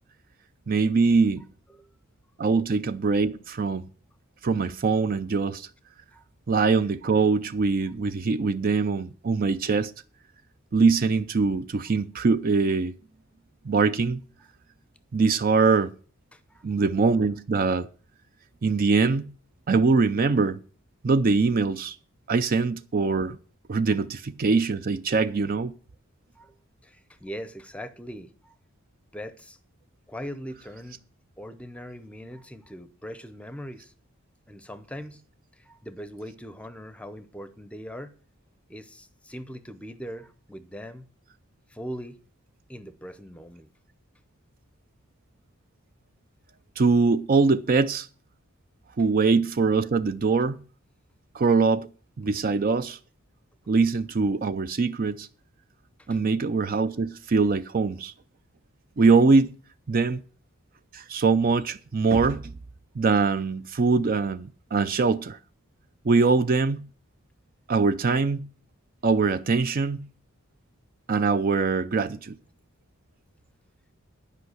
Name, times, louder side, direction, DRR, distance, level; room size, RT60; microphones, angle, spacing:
voice 1, 0.7-1.4 2.4-3.8 4.4-5.7 6.5-9.9 10.7-12.9 13.6-14.2 15.1-15.9 16.6-17.9 18.6-19.2 19.7-20.6 21.0-22.0 22.3-23.4 23.7-25.7 46.8-48.1 49.0-50.6 51.3-51.9 52.2-53.0 53.7-55.3 56.1-58.1 59.0-59.5 59.9-60.2 60.9-62.6 63.0-65.4 66.0-66.9 67.7-68.5 69.0-70.1 71.1-72.3, right 4 dB, 40° right, 0.4 m, -23 dB
voice 2, 16.3-16.6 26.3-26.6 26.8-28.5 29.1-29.6 30.1-31.0 31.4-33.9 34.5-35.2 35.6-38.1 38.7-41.0 41.7-42.2 42.7-43.7 56.0-56.2, equal, 5° left, 0.7 m, -40 dB
10.5 x 5.5 x 7.9 m
head